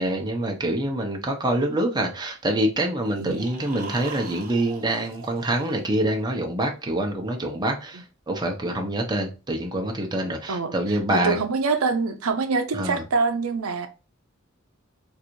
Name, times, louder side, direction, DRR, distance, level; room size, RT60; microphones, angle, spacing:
voice 1, 0.0-11.4 12.7-13.0, right 1 dB, 20° right, 0.8 m, -26 dB
sound 1, 3.0-6.2, right 4 dB, 45° right, 1.0 m, -42 dB
voice 2, 10.5-13.9, right 4 dB, 90° right, 0.6 m, -25 dB
4.0 x 2.6 x 4.5 m
head